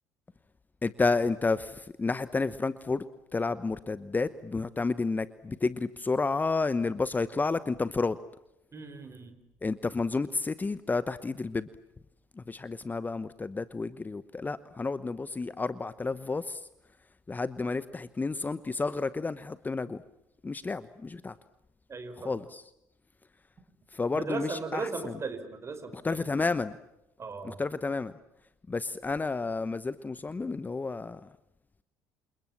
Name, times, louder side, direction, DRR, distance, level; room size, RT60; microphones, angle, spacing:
voice 1, 0.8-3.1 3.3-8.2 9.6-11.7 12.4-16.6 17.3-20.0 20.4-21.4 22.2-22.6 23.9-25.1 25.9-26.7 27.4-28.1 28.7-31.3, left 3 dB, 20° left, 15 dB, 1.0 m, -31 dB
voice 2, 8.7-9.4 21.9-22.3 24.1-26.3 27.2-27.6, right 4 dB, 30° right, 10 dB, 5.1 m, -37 dB
28.5 x 28.0 x 7.5 m, 0.83 s
hypercardioid pair, 60°, 9 cm